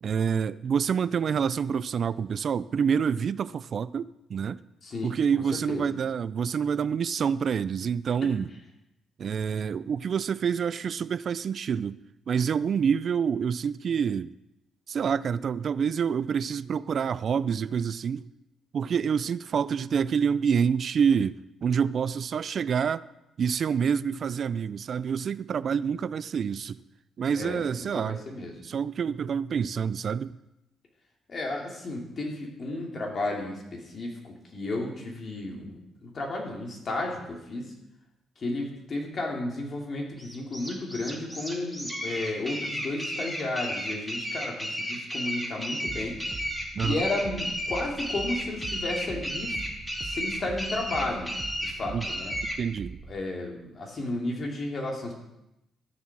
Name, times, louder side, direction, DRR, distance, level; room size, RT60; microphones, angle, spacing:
voice 1, 0.0-4.6 5.0-8.5 9.2-12.0 12.3-14.3 14.9-18.3 18.7-23.0 23.4-26.8 27.2-28.2 28.6-30.4 46.7-47.1 51.9-52.1 52.6-53.0, right 7 dB, 55° right, 17 dB, 0.3 m, -27 dB
voice 2, 4.8-5.1 5.7-5.8 27.3-28.5 31.3-37.7 38.4-46.2 46.8-49.6 50.0-51.3 51.6-52.3 53.1-55.1, left 2 dB, 45° left, 0 dB, 3.1 m, -33 dB
sound 1, 40.2-52.6, equal, 10° left, 2.6 m, -33 dB
sound 2, 45.9-53.2, right 4 dB, 35° right, 0.8 m, -42 dB
12.5 x 7.3 x 6.2 m, 0.89 s
cardioid pair, 90°, 0 cm